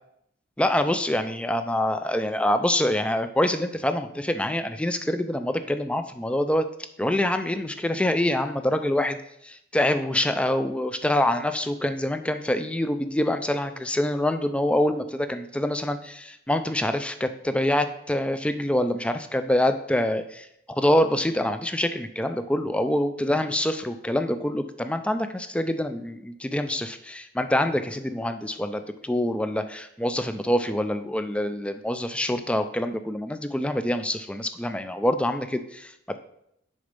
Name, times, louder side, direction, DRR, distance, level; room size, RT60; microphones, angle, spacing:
voice 1, 0.6-6.7 7.0-9.2 9.4-36.2, left 1 dB, 5° left, 9 dB, 0.4 m, -25 dB
6.5 x 4.0 x 5.2 m, 0.75 s
head